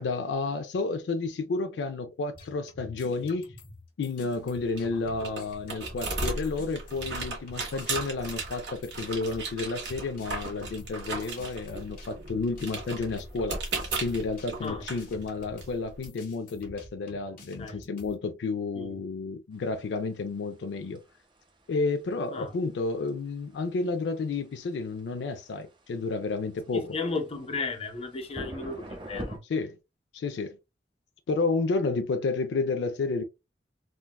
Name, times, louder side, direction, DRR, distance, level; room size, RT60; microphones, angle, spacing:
voice 1, 0.0-3.5 4.0-13.6 14.0-21.0 21.7-27.0 29.4-29.8 30.1-30.6 31.3-33.2, left 3 dB, 75° left, 0.4 m, -31 dB
sound 1, 2.3-6.2 6.4-18.2, left 2 dB, 55° left, 1.1 m, -49 dB
sound 2, 4.4-16.1, right 3 dB, 70° right, 1.6 m, -37 dB
sound 3, 19.6-29.4, right 1 dB, 30° right, 0.7 m, -46 dB
voice 2, 26.7-29.4, left 3 dB, 35° left, 0.7 m, -34 dB
3.7 x 2.2 x 2.2 m
head